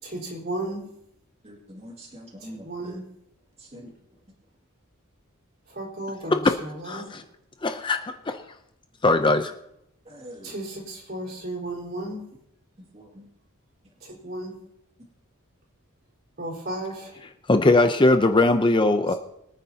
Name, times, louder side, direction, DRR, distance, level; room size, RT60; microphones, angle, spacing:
voice 1, 0.0-0.9 2.4-3.0 5.7-7.2 10.4-12.3 14.0-14.5 16.4-17.2, right 1 dB, 50° right, -2 dB, 4.3 m, -34 dB
voice 2, 1.4-2.9 3.7-3.9 10.1-10.5 12.9-13.2, equal, 30° right, -2 dB, 2.1 m, -44 dB
voice 3, 6.8-7.2 7.6-8.4 9.0-9.5 17.5-19.1, left 2 dB, 20° left, 7 dB, 0.5 m, -20 dB
23.0 x 9.5 x 2.8 m, 0.78 s
head